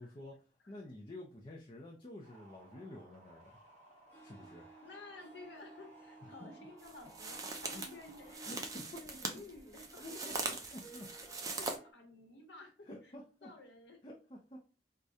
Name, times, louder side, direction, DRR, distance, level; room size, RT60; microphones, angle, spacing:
voice 1, 0.0-3.6 4.2-4.7 6.2-6.3 7.7-7.8 8.4-9.0 10.0-10.3 10.7-11.1 12.9-13.5 14.0-14.6, left 1 dB, 30° left, -1 dB, 0.5 m, -49 dB
sound 1, 2.2-8.4, right 2 dB, 40° right, 1.0 m, -60 dB
Harp, 4.1-11.9, right 3 dB, 10° left, 0.9 m, -58 dB
voice 2, 4.8-8.6 8.9-10.8 11.6-13.1 13.4-14.0, left 3 dB, 75° left, 3 dB, 1.0 m, -53 dB
sound 2, 6.8-11.8, right 3 dB, 20° right, 0.5 m, -41 dB
4.7 x 2.2 x 2.6 m, 0.36 s
head